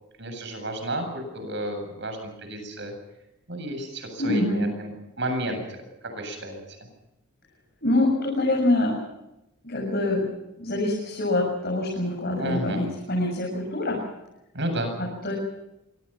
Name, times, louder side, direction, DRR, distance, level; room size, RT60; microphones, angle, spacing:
voice 1, 0.2-2.2 2.5-2.9 3.5-5.8 6.1-6.8 12.4-12.9 14.5-14.9, right 1 dB, 55° right, 6 dB, 8.0 m, -32 dB
voice 2, 4.2-4.7 7.8-9.0 9.6-10.3 10.6-14.0 15.0-15.3, left 1 dB, 45° left, -2 dB, 7.0 m, -25 dB
26.0 x 25.0 x 5.8 m, 0.90 s
head